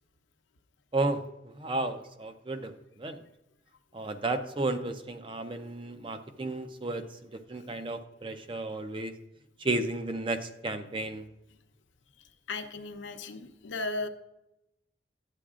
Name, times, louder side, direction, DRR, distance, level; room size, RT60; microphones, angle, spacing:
voice 1, 0.9-2.7 3.0-3.2 3.9-9.1 9.6-11.3, right 2 dB, 30° right, 8 dB, 0.5 m, -33 dB
voice 2, 12.5-14.1, left 3 dB, 90° left, 7 dB, 0.7 m, -35 dB
11.5 x 8.8 x 2.4 m, 0.88 s
head